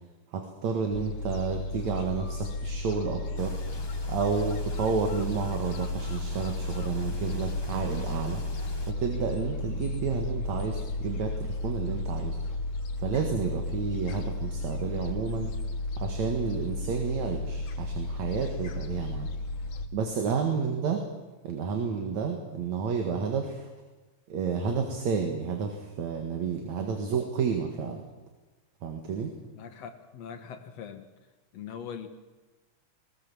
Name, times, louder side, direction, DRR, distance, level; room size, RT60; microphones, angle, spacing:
voice 1, 0.3-3.5 4.1-8.4 8.9-12.4 13.0-15.5 16.0-19.3 19.9-21.0 21.4-23.7 24.3-28.0 28.8-29.3, right 6 dB, 65° right, 4 dB, 2.9 m, -31 dB
Gull seagull, 0.9-19.9, left 2 dB, 85° left, 2.8 m, -33 dB
sound 1, 3.4-8.9, left 1 dB, 30° left, 0.4 m, -46 dB
voice 2, 29.6-31.0 31.5-32.1, left 7 dB, 60° left, 8 dB, 2.4 m, -41 dB
20.0 x 19.5 x 7.2 m, 1.2 s
omnidirectional pair, 3.5 m